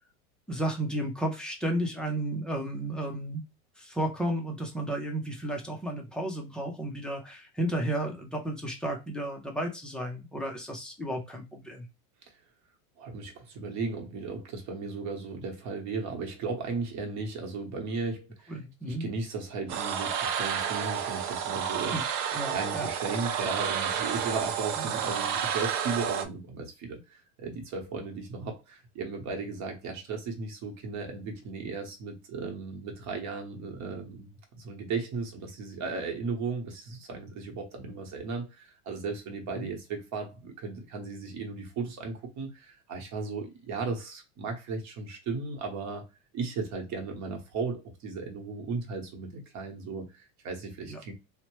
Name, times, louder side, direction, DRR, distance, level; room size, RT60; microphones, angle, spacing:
voice 1, 0.5-3.4 3.8-11.9 18.5-19.1 21.9-22.0 22.3-22.9 24.8-24.9 39.6-39.7 50.9-51.0, right 1 dB, ahead, 0.4 m, -33 dB
voice 2, 13.0-18.6 18.8-22.0 22.5-46.0 46.3-51.1, right 4 dB, 40° right, 1.0 m, -36 dB
sound 1, 19.7-26.2, right 8 dB, 60° right, 0.6 m, -30 dB
2.8 x 2.2 x 3.0 m
supercardioid pair, 130°, 44 cm